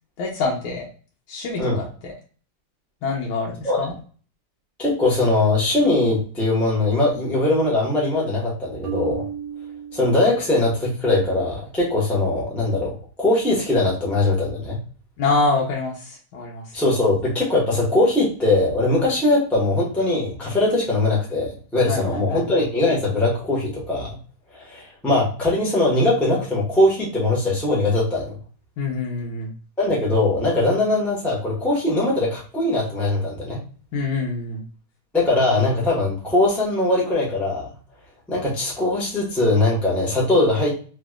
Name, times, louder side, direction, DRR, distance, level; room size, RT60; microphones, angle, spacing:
voice 1, 0.2-0.9 1.3-2.1 3.0-3.9 15.2-16.8 21.9-22.6 28.8-29.5 33.9-34.6, left 3 dB, 80° left, -3 dB, 1.6 m, -26 dB
voice 2, 4.8-9.2 9.9-12.9 13.2-14.8 16.7-24.1 24.5-28.3 29.8-33.6 35.1-37.7 38.3-40.8, left 2 dB, ahead, -5 dB, 0.9 m, -21 dB
Marimba xylophone, 8.8-10.9, right 9 dB, 65° right, 1.0 m, -34 dB
3.5 x 3.1 x 2.3 m, 0.41 s
omnidirectional pair, 2.2 m